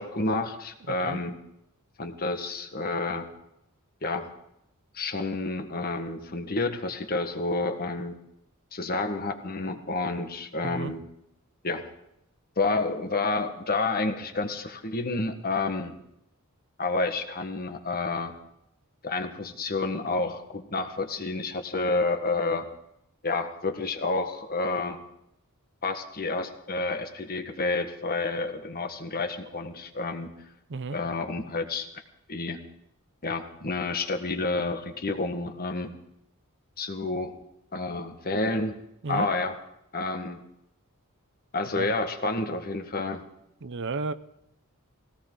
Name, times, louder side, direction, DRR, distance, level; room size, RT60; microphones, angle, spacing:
voice 1, 0.0-1.3 2.0-3.3 4.0-4.3 4.9-8.1 8.7-11.0 11.6-11.8 12.6-15.9 16.8-18.3 19.0-22.6 23.2-25.0 25.8-30.3 30.9-31.9 32.3-32.6 33.2-35.9 36.8-37.4 37.7-38.7 39.1-39.5 39.9-40.4 41.5-43.2, left 3 dB, 45° left, 6 dB, 1.5 m, -29 dB
voice 2, 0.9-1.2 10.6-10.9 30.7-31.0 39.0-39.3 41.8-41.9 43.6-44.1, right 3 dB, 55° right, 14 dB, 0.7 m, -32 dB
20.0 x 17.5 x 3.9 m, 0.80 s
head